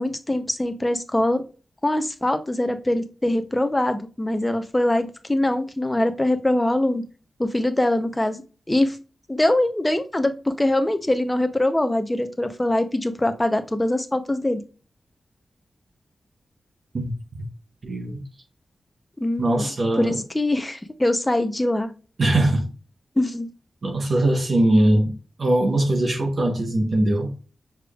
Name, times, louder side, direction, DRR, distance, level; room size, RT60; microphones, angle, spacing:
voice 1, 0.0-1.4 1.8-7.0 7.4-8.4 8.7-9.0 9.3-14.6 19.2-19.7 20.0-21.9 23.2-23.5, left 1 dB, 15° left, 0.6 m, -23 dB
voice 2, 17.8-18.2 19.4-20.2 22.2-22.7 23.8-27.3, right 1 dB, 50° right, 1.0 m, -21 dB
6.5 x 3.4 x 2.3 m
wide cardioid pair, 150°, 0 cm